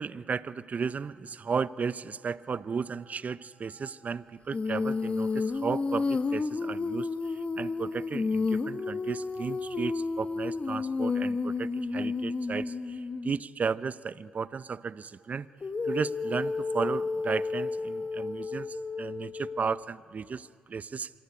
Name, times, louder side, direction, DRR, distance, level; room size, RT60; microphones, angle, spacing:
voice 1, 0.0-15.5 15.8-21.1, right 5 dB, 50° right, 17 dB, 0.8 m, -34 dB
Female singing, 4.5-13.4 15.6-19.8, left 4 dB, 40° left, 1.4 m, -31 dB
26.0 x 22.5 x 9.7 m, 2.5 s
supercardioid pair, 50°, 3 cm